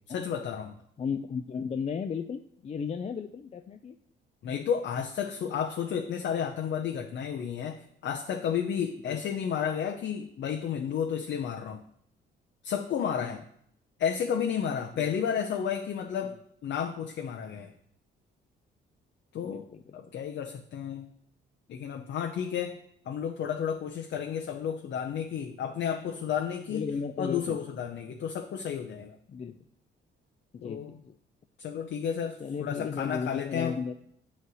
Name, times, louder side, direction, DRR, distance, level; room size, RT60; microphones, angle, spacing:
voice 1, 0.1-0.7 4.4-11.8 12.6-13.4 14.0-16.4 16.6-17.7 19.3-19.7 19.9-21.1 21.7-22.8 23.1-26.8 27.2-29.2 30.6-30.9 31.6-33.8, left 8 dB, 65° left, 3 dB, 0.7 m, -32 dB
voice 2, 1.0-4.0 9.0-9.2 13.2-13.4 14.9-15.1 19.4-19.9 26.7-27.6 29.3-29.6 30.5-31.2 32.4-33.9, left 6 dB, 35° left, 6 dB, 0.4 m, -35 dB
9.6 x 3.2 x 6.2 m, 0.71 s
cardioid pair, 90°, 20 cm